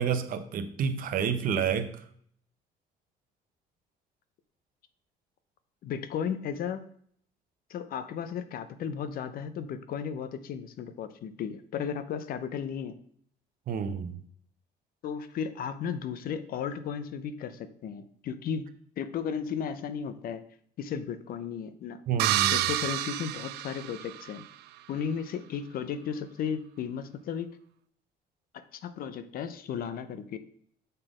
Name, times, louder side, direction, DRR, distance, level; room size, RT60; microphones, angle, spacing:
voice 1, 0.0-2.0 13.7-14.2 22.1-22.7, right 7 dB, 55° right, 10 dB, 0.8 m, -29 dB
voice 2, 5.8-6.8 7.7-13.0 15.0-18.7 19.0-20.4 20.8-22.0 22.5-24.4 24.9-27.5 28.5-30.4, left 7 dB, 60° left, 12 dB, 0.6 m, -35 dB
sound 1, 22.2-24.4, right 14 dB, 75° right, 0.4 m, -29 dB
6.7 x 4.0 x 4.9 m, 0.62 s
cardioid pair, 110°, 17 cm